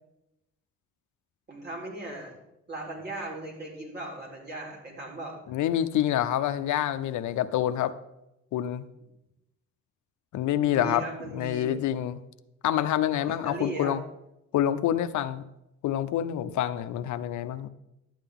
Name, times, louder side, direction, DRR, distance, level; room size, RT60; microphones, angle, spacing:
voice 1, 1.5-2.3 2.7-5.4 10.6-11.7 13.1-13.9, right 2 dB, 35° right, -2 dB, 3.8 m, -38 dB
voice 2, 5.5-7.9 8.5-8.9 10.3-11.0 11.3-12.2 12.6-14.0 14.5-15.4 15.8-17.7, left 11 dB, 75° left, 12 dB, 0.6 m, -27 dB
12.0 x 8.9 x 3.6 m, 0.88 s
cardioid pair, 90°, 30 cm